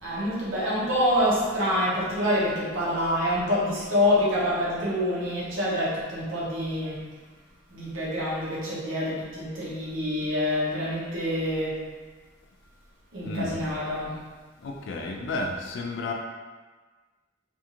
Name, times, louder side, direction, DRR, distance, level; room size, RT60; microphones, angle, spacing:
voice 1, 0.0-7.0 7.7-11.8 13.1-14.1, left 1 dB, 85° right, -7 dB, 0.8 m, -26 dB
voice 2, 13.2-13.6 14.6-16.1, left 2 dB, 65° left, 1 dB, 0.3 m, -32 dB
2.5 x 2.4 x 2.9 m, 1.4 s
head